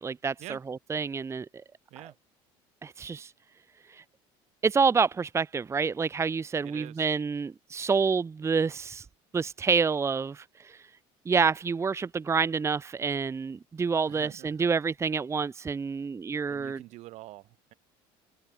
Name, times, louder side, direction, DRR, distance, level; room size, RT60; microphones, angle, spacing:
voice 1, 0.0-1.5 2.8-3.3 3.9-4.0 4.6-9.0 9.3-10.8 11.3-16.8, right 5 dB, 20° right, 1.1 m, -28 dB
voice 2, 6.6-7.1 14.1-14.7 16.5-17.7, right 18 dB, 65° right, 3.7 m, -46 dB
open air
supercardioid pair, 100°, 12 cm